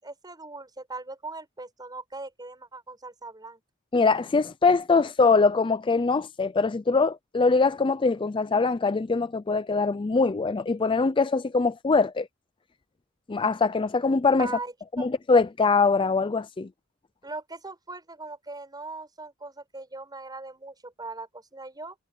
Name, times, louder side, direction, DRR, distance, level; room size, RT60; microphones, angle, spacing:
voice 1, 0.0-3.6 14.4-15.1 17.2-22.0, right 3 dB, 20° right, 7.5 m, -40 dB
voice 2, 3.9-12.3 13.3-14.5 15.0-16.7, left 4 dB, 25° left, 0.4 m, -23 dB
head